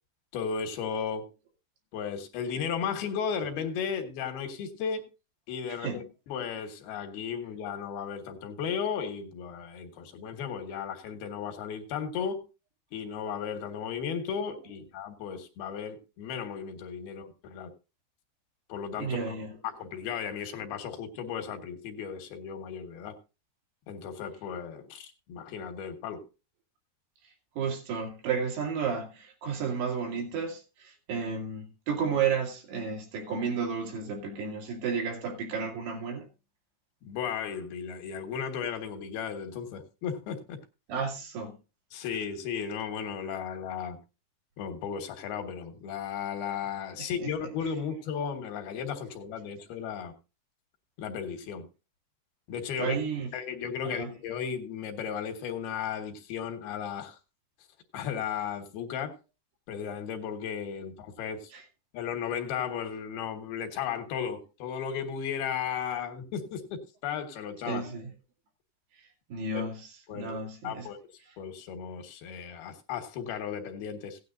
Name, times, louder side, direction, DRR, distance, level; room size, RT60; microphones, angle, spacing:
voice 1, 0.3-1.3 1.9-5.0 5.5-12.4 12.9-17.7 18.7-19.4 19.6-23.2 23.9-26.2 37.0-40.6 41.9-44.0 44.6-50.1 51.0-51.7 52.5-53.0 53.3-57.2 57.9-59.1 59.7-61.4 61.9-67.8 69.5-69.6 70.1-70.3 70.6-71.0 71.4-74.2, left 7 dB, 75° left, 3.2 m, -35 dB
voice 2, 19.0-19.5 27.6-36.3 40.9-41.5 47.0-47.3 52.8-53.3 53.8-54.1 61.5-61.6 67.7-68.1 69.3-70.9, right 5 dB, 80° right, 4.5 m, -32 dB
17.0 x 9.5 x 2.6 m
omnidirectional pair, 4.6 m